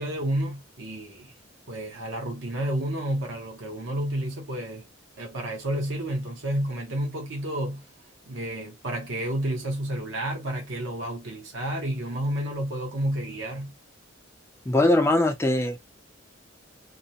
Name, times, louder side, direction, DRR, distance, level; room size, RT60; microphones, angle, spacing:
voice 1, 0.0-1.3 1.7-4.9 5.2-7.8 8.3-13.7, right 1 dB, 60° right, 0.7 m, -30 dB
voice 2, 14.7-15.8, left 1 dB, 15° left, 0.4 m, -21 dB
2.5 x 2.0 x 2.7 m
head